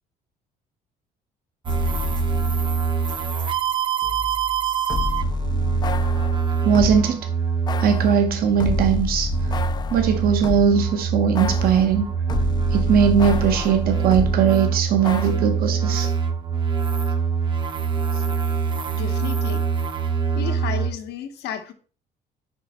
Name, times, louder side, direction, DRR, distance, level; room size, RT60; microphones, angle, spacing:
sound 1, 1.7-3.4 3.7-7.0 7.7-10.9 11.3-14.4 15.0-15.3, left 4 dB, 25° left, 0.3 m, -29 dB
sound 2, 1.7-20.9, right 6 dB, 30° right, 0.7 m, -24 dB
voice 1, 6.6-7.3 7.8-9.3 9.9-12.0 12.7-16.1, right 7 dB, 60° right, 0.8 m, -19 dB
voice 2, 18.9-19.6 20.3-21.7, left 9 dB, 75° left, 1.0 m, -32 dB
5.0 x 4.5 x 4.2 m
cardioid pair, 110°, 17 cm